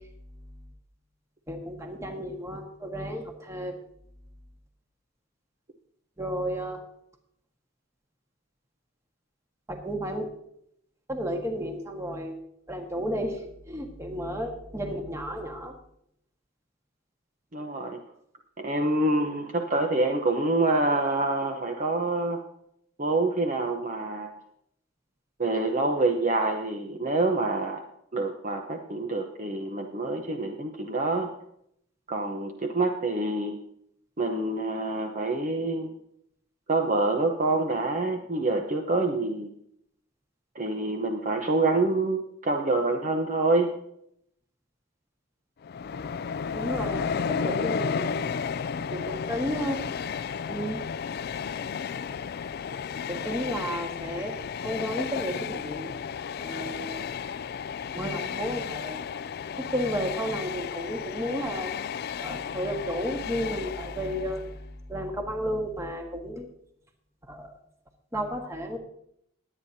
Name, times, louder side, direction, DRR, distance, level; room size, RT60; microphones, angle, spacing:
voice 1, 1.5-3.8 6.2-6.8 9.7-10.3 11.1-12.4 12.7-15.7 46.5-48.2 48.9-49.8 50.5-50.8 53.1-54.3 54.6-55.9 56.4-57.0 57.9-59.0 59.6-61.7 62.2-64.6 64.9-66.5 67.3-67.6 68.1-68.8, equal, 15° right, 3 dB, 1.6 m, -32 dB
voice 2, 17.5-18.0 18.6-22.4 23.0-24.3 25.4-27.8 28.1-31.3 32.1-33.6 34.2-35.9 36.7-39.5 40.5-43.7, right 2 dB, 40° right, 3 dB, 0.9 m, -26 dB
Train, 45.6-64.5, left 6 dB, 50° left, 0.4 m, -33 dB
21.0 x 9.1 x 2.8 m, 0.72 s
head